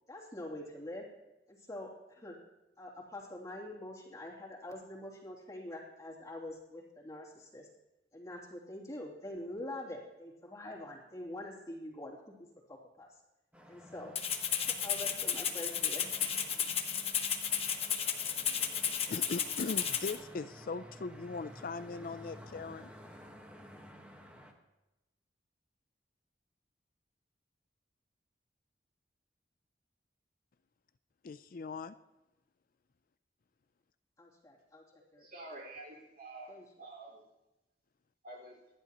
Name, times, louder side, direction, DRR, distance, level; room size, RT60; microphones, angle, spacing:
voice 1, 0.1-1.0 1.5-2.3 2.8-7.7 8.1-12.3 12.7-13.2 13.7-14.1 14.8-16.1 34.2-34.8 35.1-35.3 36.5-36.6, left 1 dB, 20° left, 2.9 m, -45 dB
sound 1, 13.5-24.5, equal, 10° right, 1.4 m, -53 dB
Rattle (instrument), 14.2-20.2, left 8 dB, 35° left, 1.2 m, -33 dB
voice 2, 18.9-22.9 31.2-31.9, left 4 dB, 50° left, 0.4 m, -40 dB
voice 3, 35.2-36.5 36.8-37.2 38.2-38.6, right 2 dB, 55° right, 4.7 m, -48 dB
27.0 x 11.0 x 3.0 m
head